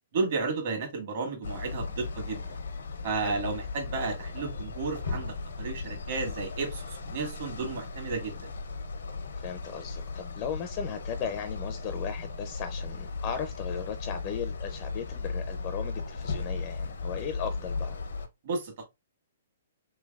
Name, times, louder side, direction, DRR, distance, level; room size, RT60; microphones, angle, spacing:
voice 1, 0.1-2.5 3.0-8.5 18.4-18.9, right 4 dB, 50° right, 1.4 m, -33 dB
sound 1, 1.4-18.3, left 4 dB, 90° left, 0.8 m, -36 dB
voice 2, 9.4-18.0, left 7 dB, 30° left, 0.4 m, -37 dB
3.4 x 3.2 x 2.3 m
hypercardioid pair, 155°, 0 cm